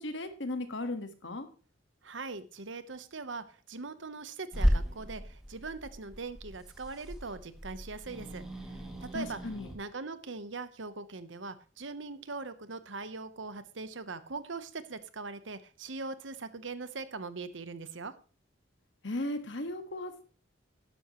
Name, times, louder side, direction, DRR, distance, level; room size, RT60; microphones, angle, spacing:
voice 1, 0.0-1.5 9.1-9.7 19.0-20.2, left 1 dB, 70° left, 8 dB, 1.6 m, -36 dB
voice 2, 2.0-9.4 9.7-18.1, right 3 dB, 75° right, 12 dB, 1.0 m, -41 dB
Growling / Hiss, 4.5-9.7, equal, 5° right, 2.4 m, -34 dB
12.0 x 11.0 x 3.1 m, 0.37 s
head